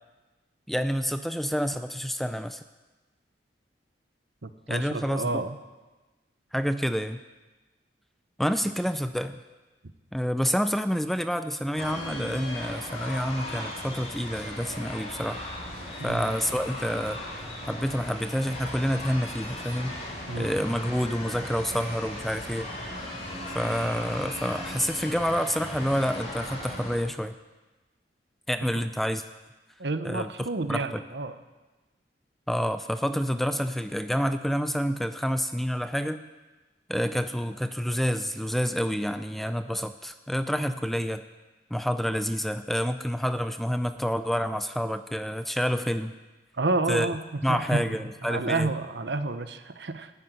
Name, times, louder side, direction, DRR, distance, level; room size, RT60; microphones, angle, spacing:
voice 1, 0.7-2.6 4.7-5.4 6.5-7.2 8.4-9.4 10.1-15.4 16.0-17.2 17.7-19.9 20.4-22.7 23.5-27.4 28.5-29.2 30.0-31.0 32.5-36.2 36.9-41.2 41.7-46.1 46.9-47.1 47.4-48.7, equal, ahead, 10 dB, 0.4 m, -28 dB
voice 2, 4.4-5.6 16.0-16.2 20.3-20.5 29.8-31.3 46.5-50.1, right 2 dB, 70° right, 10 dB, 0.9 m, -30 dB
sound 1, 11.8-27.0, left 1 dB, 35° left, 4.2 m, -37 dB
13.0 x 10.0 x 9.3 m, 1.2 s
head